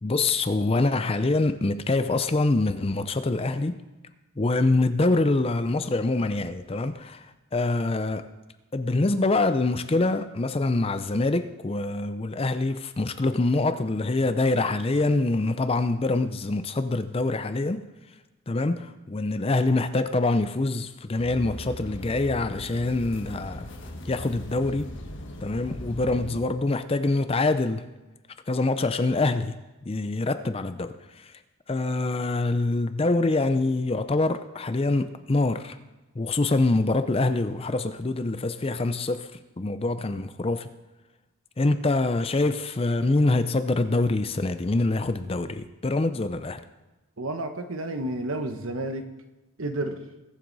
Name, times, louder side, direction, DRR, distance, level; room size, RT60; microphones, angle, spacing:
voice 1, 0.0-3.8 4.4-8.3 8.7-17.9 18.5-23.7 24.0-24.9 25.4-27.9 28.5-29.6 29.9-31.3 31.7-35.8 36.2-40.7 41.6-46.6, left 2 dB, 25° left, 0.5 m, -25 dB
sound 1, 21.2-26.3, left 1 dB, 55° left, 1.5 m, -39 dB
voice 2, 47.2-49.1 49.6-50.0, right 1 dB, 65° right, 1.1 m, -31 dB
21.5 x 7.8 x 4.0 m
head